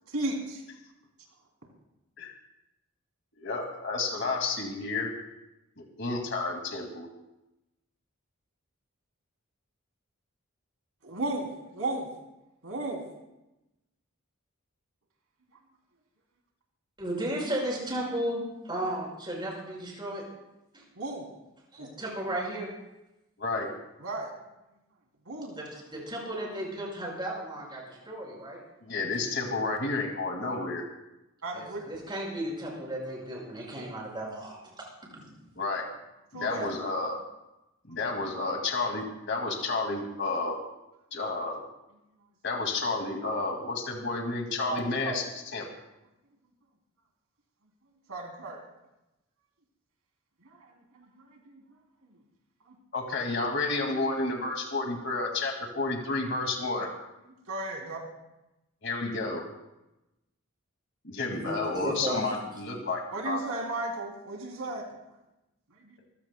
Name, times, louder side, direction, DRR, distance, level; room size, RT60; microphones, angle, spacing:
voice 1, 0.1-0.6 11.0-11.5 11.7-12.1 12.6-13.0 21.0-21.2 21.8-21.9 24.0-24.3 25.3-25.5 29.5-29.6 31.4-31.8 36.3-36.6 44.7-44.8 45.0-45.1 48.1-48.6 57.5-58.0 63.1-64.8, right 2 dB, 90° right, 0 dB, 3.1 m, -34 dB
voice 2, 3.4-5.1 5.8-7.1 23.4-23.7 28.8-30.8 35.6-35.8 36.3-37.2 37.9-40.6 41.1-41.6 42.4-45.2 45.5-45.7 52.9-56.9 58.8-59.4 61.0-63.4, left 3 dB, 55° left, 2 dB, 2.2 m, -31 dB
voice 3, 17.0-20.2 20.7-20.8 21.7-22.7 25.6-28.6 31.5-34.8 35.1-35.3 36.5-36.7 61.3-62.3, right 1 dB, 20° right, -3 dB, 5.3 m, -34 dB
27.0 x 15.5 x 2.2 m, 0.93 s
head